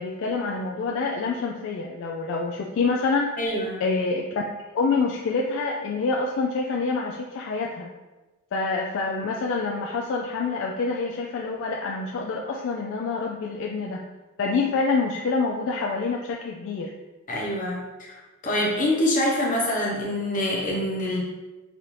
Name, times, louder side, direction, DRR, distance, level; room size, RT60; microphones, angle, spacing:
voice 1, 0.0-3.3 3.8-4.4 4.7-7.9 8.5-14.1 14.4-16.9, left 4 dB, 60° left, -1 dB, 0.3 m, -26 dB
voice 2, 3.4-3.8 17.3-18.1 18.4-21.2, left 1 dB, 35° left, -3 dB, 0.9 m, -25 dB
4.2 x 2.6 x 3.2 m, 1.2 s
head